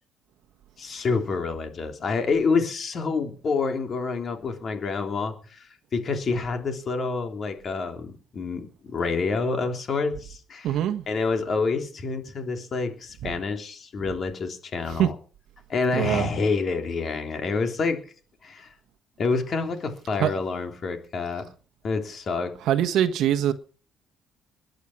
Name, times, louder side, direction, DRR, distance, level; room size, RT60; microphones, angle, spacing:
voice 1, 0.8-5.7 5.9-10.8 11.1-15.1 15.7-18.0 18.4-18.7 19.2-21.4 21.8-22.5, left 4 dB, 35° left, 3.4 m, -27 dB
voice 2, 10.6-11.0 15.0-15.1 15.9-16.3 20.2-20.3 22.7-23.5, right 11 dB, 60° right, 1.3 m, -22 dB
21.0 x 9.5 x 6.0 m
cardioid pair, 160°, 0 cm